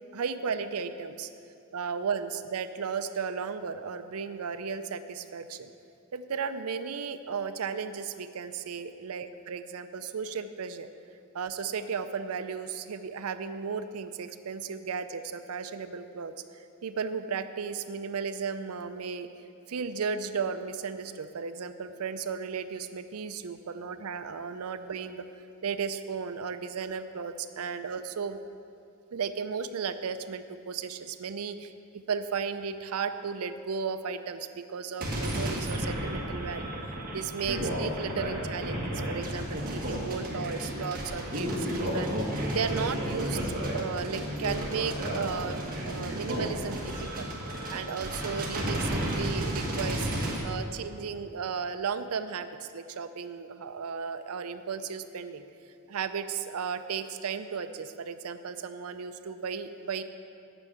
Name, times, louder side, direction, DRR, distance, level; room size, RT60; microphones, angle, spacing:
voice 1, 0.1-1.3 1.7-5.7 6.1-10.9 11.3-19.3 19.7-25.3 25.6-28.4 29.1-36.7 37.1-42.2 42.5-43.4 43.7-47.3 47.7-50.1 50.4-55.4 55.9-60.0, right 6 dB, 85° right, 11 dB, 0.5 m, -35 dB
sound 1, 35.0-50.4, equal, 40° right, 1.7 m, -32 dB
9.0 x 6.2 x 7.9 m, 2.5 s
head